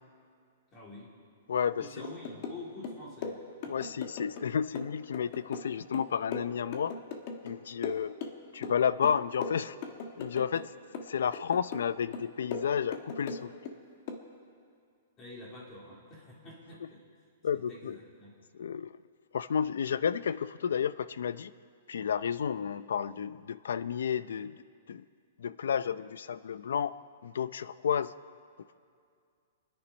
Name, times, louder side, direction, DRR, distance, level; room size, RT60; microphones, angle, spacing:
voice 1, 0.7-1.1 1.8-3.9 15.2-17.0 17.5-18.3, left 2 dB, 20° left, -3 dB, 3.3 m, -47 dB
voice 2, 1.5-1.9 3.7-6.9 7.4-8.1 8.5-9.8 10.2-10.7 11.1-13.5 17.4-18.0 18.5-19.0 19.3-21.5 21.9-24.6 24.9-25.0 25.4-27.0 27.2-28.1, left 7 dB, 85° left, 16 dB, 0.5 m, -31 dB
sound 1, 2.0-2.6 2.8-4.5 4.8-7.6 7.8-8.8 9.0-10.7 10.9-11.9 12.1-13.8 14.1-14.3, left 5 dB, 35° left, 1.3 m, -39 dB
26.5 x 10.0 x 5.3 m, 2.3 s
hypercardioid pair, 170°, 0 cm